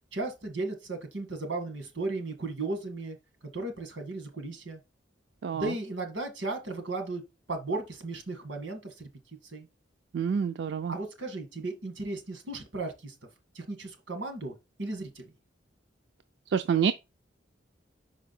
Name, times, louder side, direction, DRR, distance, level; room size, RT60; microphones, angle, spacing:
voice 1, 0.1-3.2 3.5-4.8 5.5-7.2 7.5-9.1 9.4-9.7 10.9-13.1 13.6-15.3, right 2 dB, 90° right, 1.8 m, -35 dB
voice 2, 5.4-5.7 10.1-10.9 16.5-16.9, right 7 dB, 65° right, 0.4 m, -27 dB
5.4 x 5.0 x 4.2 m
head